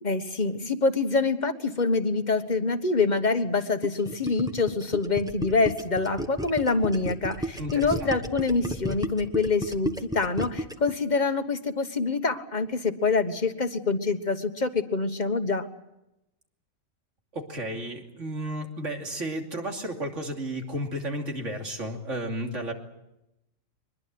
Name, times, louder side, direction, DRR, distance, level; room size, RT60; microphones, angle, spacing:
voice 1, 0.0-15.7, left 4 dB, 35° left, 8 dB, 1.5 m, -26 dB
Gurgling, 3.8-10.9, equal, 5° right, 1.1 m, -33 dB
voice 2, 7.6-8.1 17.3-22.7, right 1 dB, 70° right, 2 dB, 3.2 m, -33 dB
24.0 x 21.5 x 7.7 m, 0.88 s
omnidirectional pair, 1.3 m